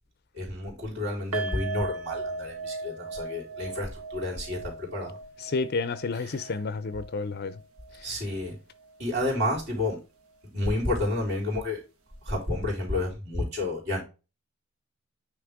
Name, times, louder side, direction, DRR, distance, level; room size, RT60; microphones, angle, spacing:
voice 1, 0.3-5.2 6.1-6.6 8.0-8.6 9.0-10.0 10.5-11.8 12.2-14.0, left 1 dB, 50° right, 3.7 m, -30 dB
sound 1, 1.3-8.5 8.8-9.0 9.4-9.5, right 3 dB, 80° right, 1.3 m, -38 dB
voice 2, 5.5-7.5, left 4 dB, 45° left, 0.5 m, -30 dB
9.5 x 3.2 x 3.5 m
head